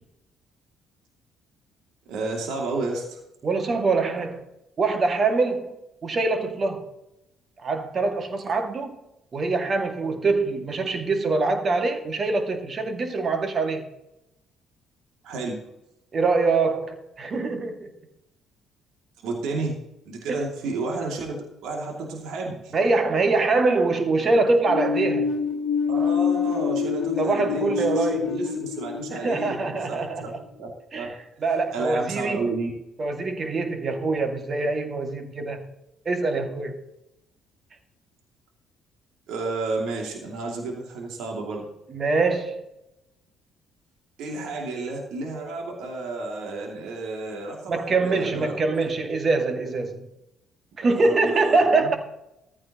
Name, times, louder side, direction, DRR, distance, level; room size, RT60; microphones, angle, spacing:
voice 1, 2.1-3.2 15.2-15.7 19.2-19.8 20.1-22.7 25.9-30.3 30.6-31.1 31.7-32.7 39.3-41.7 44.2-48.6 50.8-52.0, right 3 dB, 65° right, 2.6 m, -31 dB
voice 2, 3.4-4.4 4.8-5.7 6.0-6.8 7.6-9.0 9.3-13.8 16.1-17.9 20.3-20.4 22.7-25.3 27.2-28.4 29.1-30.3 30.9-31.1 31.4-32.5 33.0-35.6 36.1-36.8 41.9-42.6 47.7-50.1 50.8-52.0, right 3 dB, 40° right, 2.1 m, -24 dB
sound 1, 24.7-30.3, left 6 dB, 70° left, 1.1 m, -26 dB
14.5 x 13.5 x 3.0 m
figure-of-eight pair, 50°, 0 cm